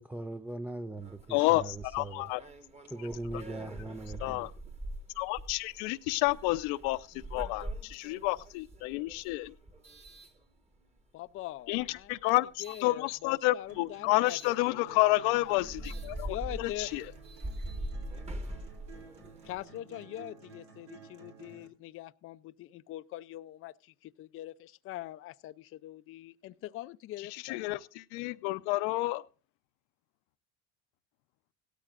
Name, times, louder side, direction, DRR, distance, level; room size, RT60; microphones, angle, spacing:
voice 1, 0.0-2.3 2.9-4.5, right 2 dB, 5° right, 0.5 m, -40 dB
sound 1, 1.0-11.0 11.6-12.9 14.3-14.5 15.1-15.2 15.4-19.6, right 1 dB, 20° right, 1.6 m, -43 dB
voice 2, 1.3-2.4 4.2-4.5 5.2-9.5 11.7-17.0 27.2-29.2, left 20 dB, 80° left, 0.7 m, -30 dB
voice 3, 11.1-12.3 12.6-15.0 16.2-16.9 19.4-27.7, left 14 dB, 45° left, 0.5 m, -43 dB
sound 2, 13.7-21.7, right 5 dB, 80° right, 3.3 m, -53 dB
17.0 x 13.0 x 2.5 m
supercardioid pair, 105°, 30 cm